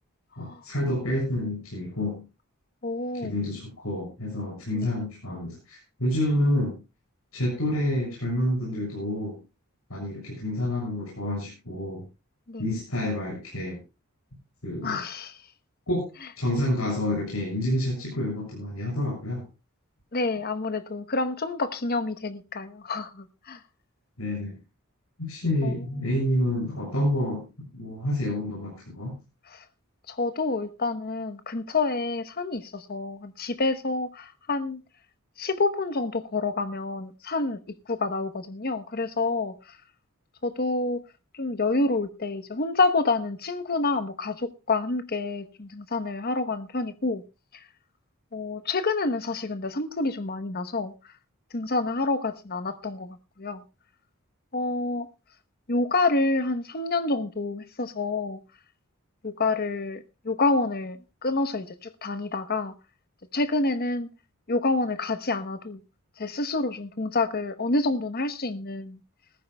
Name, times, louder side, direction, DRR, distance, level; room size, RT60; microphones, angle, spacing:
voice 1, 0.4-2.2 3.1-6.8 7.3-9.4 9.9-12.0 12.6-13.8 14.6-15.0 15.9-16.1 16.4-19.5 24.2-24.5 25.2-27.4 27.7-29.2, left 1 dB, 75° left, 7.0 m, -28 dB
voice 2, 2.8-3.4 4.7-4.9 12.5-12.6 14.8-15.4 20.1-23.6 25.6-25.7 29.5-29.6 30.1-34.8 35.4-37.6 37.9-39.8 40.4-41.0 41.3-47.2 47.5-47.6 48.3-50.9 51.5-53.6 54.5-55.1 55.7-58.4 59.2-62.7 63.3-64.1 64.5-65.8 66.2-69.0, left 3 dB, 45° left, 1.0 m, -28 dB
20.5 x 14.0 x 2.3 m
head